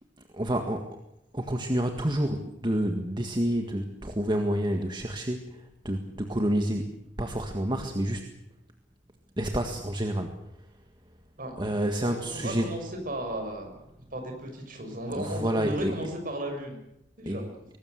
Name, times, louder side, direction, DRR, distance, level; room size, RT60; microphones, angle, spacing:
voice 1, 0.3-0.9 1.3-8.3 9.4-10.7 11.6-12.7 15.1-16.0 17.2-17.4, right 1 dB, 25° right, 5 dB, 1.7 m, -29 dB
voice 2, 12.0-13.7 14.1-16.8 17.2-17.4, right 1 dB, 45° right, 4 dB, 6.5 m, -35 dB
23.0 x 19.0 x 8.1 m, 0.82 s
head